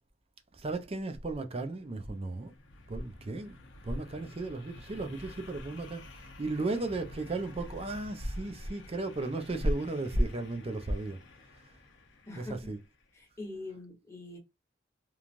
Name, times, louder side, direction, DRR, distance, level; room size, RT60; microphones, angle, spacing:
voice 1, 0.6-2.5 2.9-3.6 3.8-11.2 12.4-12.8, right 2 dB, 30° right, 0.6 m, -34 dB
sound 1, 1.5-13.1, left 2 dB, 75° left, 0.8 m, -52 dB
voice 2, 12.3-12.6 13.1-14.4, left 2 dB, 15° left, 1.2 m, -43 dB
3.1 x 2.3 x 2.5 m
head